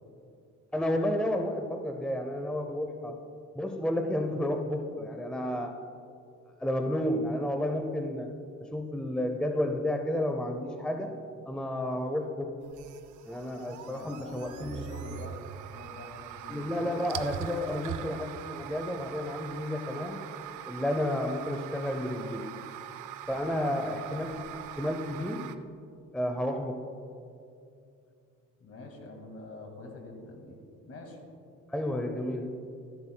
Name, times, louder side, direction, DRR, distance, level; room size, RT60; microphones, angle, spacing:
voice 1, 0.7-3.2 3.5-5.7 6.6-8.3 8.6-11.1 11.5-12.5 13.3-14.8 16.5-20.2 20.7-22.5 23.3-25.4 26.1-26.8 31.7-32.5, left 1 dB, 5° left, 4 dB, 0.6 m, -31 dB
sound 1, 12.6-25.6, right 10 dB, 80° right, 0.5 m, -42 dB
voice 2, 13.5-16.9 23.3-24.0 28.6-30.6 30.9-31.2, left 2 dB, 50° left, 3 dB, 2.0 m, -46 dB
13.5 x 11.0 x 2.2 m, 2.5 s
cardioid pair, 90°, 30 cm